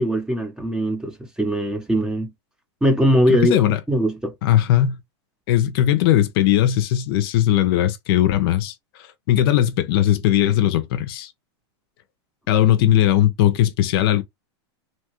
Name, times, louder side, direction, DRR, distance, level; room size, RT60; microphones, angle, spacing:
voice 1, 0.0-2.3 2.8-3.6 3.9-4.3, equal, 5° right, 0.6 m, -21 dB
voice 2, 3.3-3.8 4.4-5.0 5.5-8.7 9.3-11.3 12.5-14.2, left 12 dB, 55° left, 0.5 m, -18 dB
2.8 x 2.3 x 2.9 m
supercardioid pair, 145°, 15 cm